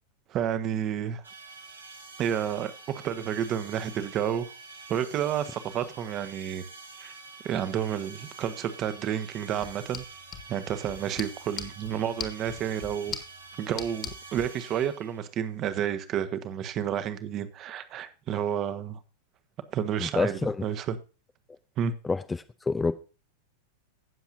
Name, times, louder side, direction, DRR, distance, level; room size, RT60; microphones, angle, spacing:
voice 1, 0.3-1.2 2.2-4.5 4.9-6.6 7.0-7.1 7.4-10.0 10.5-13.1 13.6-19.0 19.7-21.0 21.8-21.9, right 9 dB, 35° right, 1.3 m, -30 dB
sound 1, 1.2-15.3, right 4 dB, 75° right, 2.8 m, -47 dB
sound 2, 9.5-14.5, left 8 dB, 30° left, 1.9 m, -42 dB
voice 2, 20.0-20.6 22.0-22.2 22.7-22.9, left 3 dB, 10° left, 0.6 m, -26 dB
17.0 x 7.2 x 2.7 m
figure-of-eight pair, 90°, 0 cm